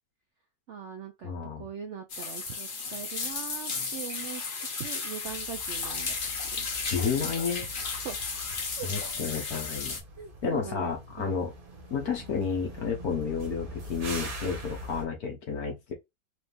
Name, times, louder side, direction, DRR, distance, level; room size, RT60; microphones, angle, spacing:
voice 1, 0.7-4.4 4.8-6.1 6.6-6.7 8.0-8.2 8.8-8.9 10.2-10.9 11.2-11.4, right 8 dB, 75° right, 0.6 m, -41 dB
voice 2, 1.2-1.6 6.8-7.7 8.9-10.0 10.4-11.5 11.9-15.9, left 6 dB, 60° left, 1.5 m, -31 dB
sound 1, 2.1-10.0, left 4 dB, 40° left, 0.8 m, -34 dB
sound 2, 5.2-15.1, right 1 dB, 35° right, 1.0 m, -43 dB
4.9 x 2.6 x 3.4 m
omnidirectional pair, 1.9 m